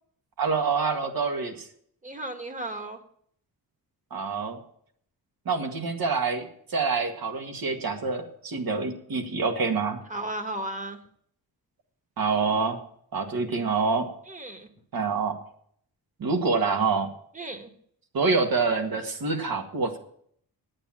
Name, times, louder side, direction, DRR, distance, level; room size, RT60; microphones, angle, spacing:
voice 1, 0.4-1.7 4.1-4.6 5.5-10.0 12.2-12.8 13.1-14.1 14.9-15.4 16.2-17.1 18.1-20.0, right 4 dB, 60° right, 4 dB, 1.9 m, -26 dB
voice 2, 2.0-3.0 10.1-11.0 14.3-14.7 17.3-17.7, right 1 dB, 20° right, 6 dB, 1.5 m, -34 dB
8.8 x 8.8 x 8.6 m, 0.64 s
wide cardioid pair, 120°, 39 cm